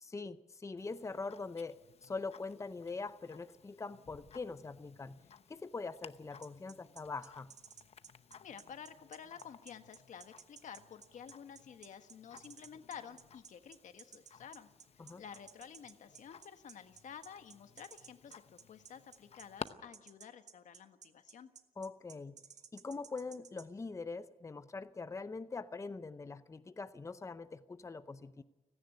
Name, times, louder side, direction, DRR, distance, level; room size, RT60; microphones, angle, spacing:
voice 1, 0.0-5.2 5.5-7.5 15.0-15.2 21.8-22.4 22.7-28.4, left 4 dB, 25° left, 13 dB, 0.6 m, -43 dB
Tick-tock, 0.8-19.7, left 7 dB, 55° left, 0.8 m, -56 dB
sound 1, 6.4-23.7, right 7 dB, 70° right, 1.4 m, -55 dB
voice 2, 8.4-14.7 15.2-21.5, left 8 dB, 85° left, 8 dB, 1.4 m, -51 dB
30.0 x 10.5 x 9.6 m, 1.1 s
wide cardioid pair, 105°, 13 cm